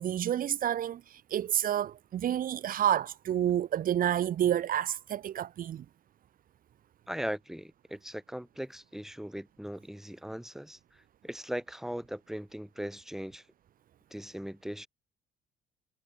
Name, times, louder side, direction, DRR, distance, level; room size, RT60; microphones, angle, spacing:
voice 1, 0.0-5.8, right 10 dB, 55° right, 2.3 m, -29 dB
voice 2, 7.1-13.4 14.1-14.9, equal, ahead, 7.0 m, -39 dB
cardioid pair, 110°, 17 cm